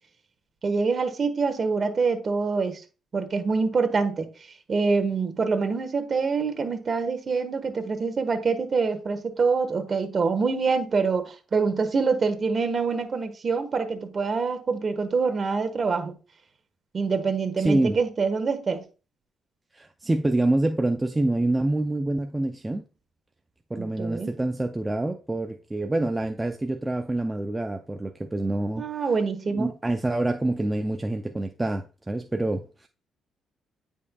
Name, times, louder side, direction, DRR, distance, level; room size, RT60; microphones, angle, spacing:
voice 1, 0.6-2.8 3.1-4.3 4.7-16.1 16.9-18.8 23.8-24.3 28.8-29.7, right 4 dB, 40° right, 1.4 m, -25 dB
voice 2, 17.6-18.0 19.7-22.8 23.7-29.0 29.5-32.9, right 2 dB, 15° right, 0.5 m, -26 dB
9.4 x 5.3 x 2.3 m
cardioid pair, 90°, 0 cm